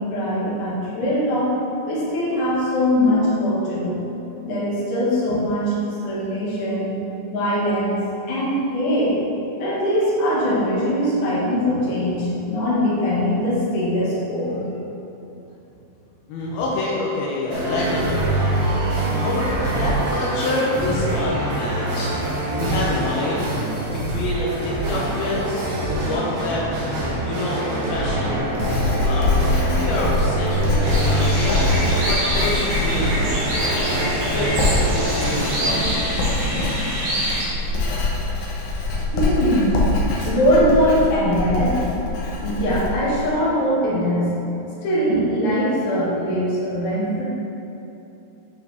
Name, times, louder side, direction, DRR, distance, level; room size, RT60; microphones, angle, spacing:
voice 1, 0.0-1.6 1.8-4.0 4.4-8.0 8.3-9.2 9.6-14.7 39.1-39.9 40.2-41.8 42.4-44.5 44.8-47.2, equal, 55° left, -8 dB, 2.3 m, -21 dB
voice 2, 16.3-18.3 19.2-19.5 19.8-22.2 22.5-23.5 23.9-26.9 27.2-28.5 29.0-31.6 32.0-33.8 34.2-36.2, left 2 dB, 90° left, -5 dB, 2.1 m, -27 dB
sound 1, 17.5-35.9, right 1 dB, 75° right, 3.8 m, -24 dB
Writing, 27.9-43.3, left 3 dB, 70° left, 2.8 m, -25 dB
sound 2, 30.8-37.5, equal, 55° right, 2.3 m, -26 dB
10.5 x 4.1 x 3.5 m, 3.0 s
omnidirectional pair, 5.5 m